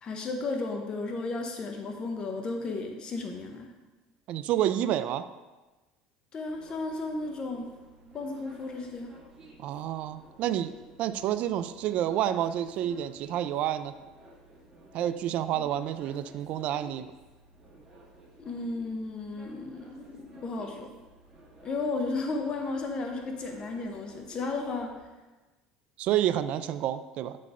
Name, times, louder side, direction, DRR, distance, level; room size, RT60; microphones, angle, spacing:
voice 1, 0.0-3.7 6.3-7.7 8.1-9.1 18.4-20.9 21.6-25.0, left 3 dB, 35° left, 3 dB, 0.7 m, -34 dB
voice 2, 4.3-5.3 9.6-10.7 11.0-13.9 14.9-17.1 26.0-27.4, right 11 dB, 55° right, 12 dB, 0.3 m, -29 dB
sound 1, 6.5-25.0, right 1 dB, 20° right, 1.9 m, -54 dB
8.3 x 3.9 x 3.6 m, 1.2 s
supercardioid pair, 115°, 3 cm